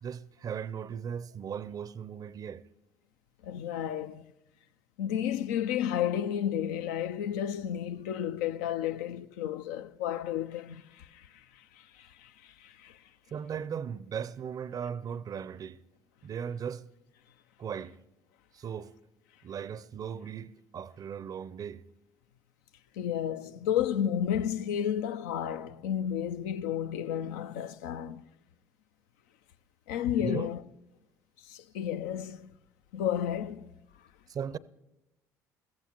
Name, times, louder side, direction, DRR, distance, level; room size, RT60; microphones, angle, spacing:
voice 1, 0.0-2.6 13.3-15.8 16.2-16.9 17.6-18.0 18.5-18.9 19.4-21.8 30.2-30.5 34.3-34.6, right 7 dB, 40° right, 0.5 m, -37 dB
voice 2, 3.4-4.2 5.0-11.3 11.8-13.0 23.0-28.3 29.9-30.6 31.5-32.5 32.9-33.7, left 10 dB, 75° left, 0.4 m, -32 dB
22.0 x 15.0 x 3.0 m
hypercardioid pair, 55°, 9 cm